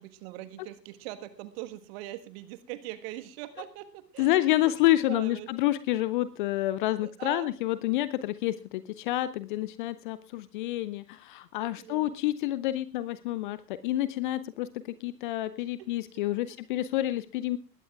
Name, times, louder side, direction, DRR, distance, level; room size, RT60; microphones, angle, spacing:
voice 1, 0.0-4.7 5.1-5.5 7.0-7.5 11.8-12.1 15.6-15.9 16.1-16.6, right 15 dB, 40° right, 11 dB, 1.5 m, -42 dB
voice 2, 4.2-17.6, left 15 dB, 30° left, 15 dB, 0.6 m, -28 dB
20.5 x 17.0 x 2.4 m, 0.32 s
figure-of-eight pair, 95°, 49 cm